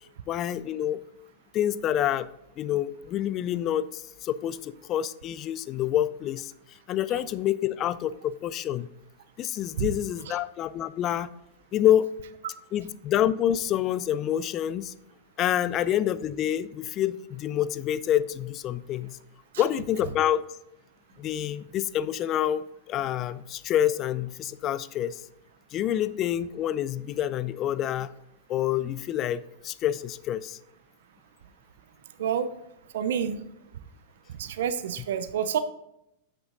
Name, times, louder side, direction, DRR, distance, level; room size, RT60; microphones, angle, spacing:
voice 1, 0.3-1.0 1.5-2.3 2.6-6.5 6.9-8.9 9.4-11.3 11.7-12.1 12.7-14.9 15.4-19.2 19.6-20.4 21.2-25.2 25.7-28.1 28.5-30.6, left 11 dB, 35° left, 16 dB, 0.4 m, -27 dB
voice 2, 32.2-32.5 32.9-33.4 34.4-35.6, right 8 dB, 75° right, 12 dB, 0.5 m, -28 dB
8.0 x 6.1 x 3.8 m, 0.82 s
hypercardioid pair, 120°, 0 cm